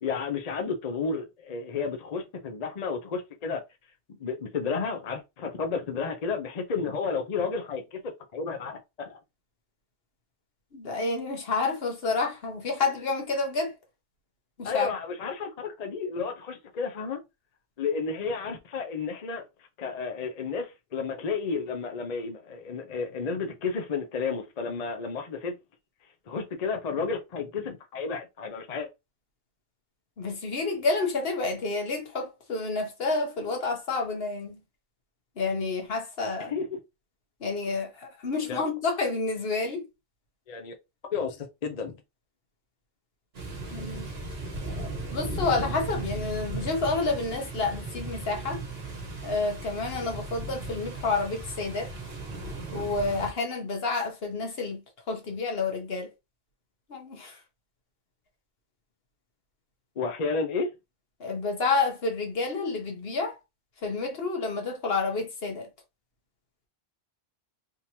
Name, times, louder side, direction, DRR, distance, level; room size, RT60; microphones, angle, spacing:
voice 1, 0.0-3.6 4.2-8.0 8.3-9.2 14.6-17.2 17.8-19.4 19.8-25.5 26.3-28.9 36.4-36.8 38.5-38.6 40.5-40.7 41.1-42.0 60.0-60.7, left 5 dB, 45° left, 0.6 m, -32 dB
voice 2, 10.7-13.8 14.6-14.9 30.2-34.6 35.4-36.5 37.4-39.9 43.7-44.1 44.7-48.6 49.2-51.9 52.7-56.1 56.9-57.4 61.2-63.4 63.8-65.7, left 3 dB, 70° left, 1.2 m, -29 dB
sound 1, 43.3-53.3, right 2 dB, 70° right, 1.4 m, -36 dB
3.6 x 2.9 x 2.7 m
omnidirectional pair, 1.1 m